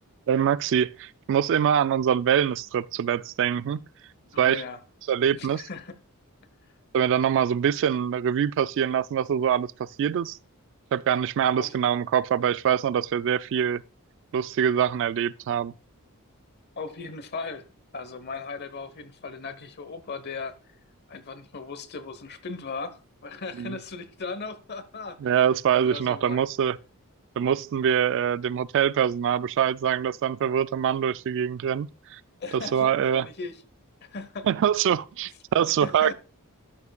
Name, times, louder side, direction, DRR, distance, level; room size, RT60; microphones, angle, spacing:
voice 1, 0.3-3.9 4.4-4.6 5.1-5.6 6.9-10.4 10.9-13.8 14.3-15.7 23.6-23.8 25.2-26.8 27.4-32.2 32.5-33.3 34.5-36.1, right 8 dB, 55° right, 0.3 m, -24 dB
voice 2, 4.3-4.8 5.3-6.0 11.6-11.8 16.8-17.7 17.9-20.5 21.1-25.3 25.7-26.4 32.4-33.6 34.0-34.5 35.8-36.1, left 4 dB, 50° left, 0.9 m, -37 dB
12.5 x 7.0 x 2.3 m
head